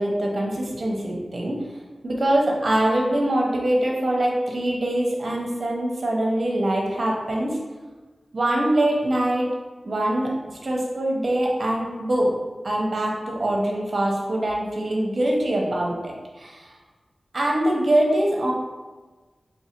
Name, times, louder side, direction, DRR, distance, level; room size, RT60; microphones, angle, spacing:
voice 1, 0.0-1.6 2.0-7.6 8.3-9.5 9.8-10.3 10.6-12.3 12.6-16.7 17.3-18.5, right 1 dB, 55° right, -1 dB, 0.9 m, -23 dB
3.0 x 2.7 x 4.3 m, 1.3 s
wide cardioid pair, 70°, 0 cm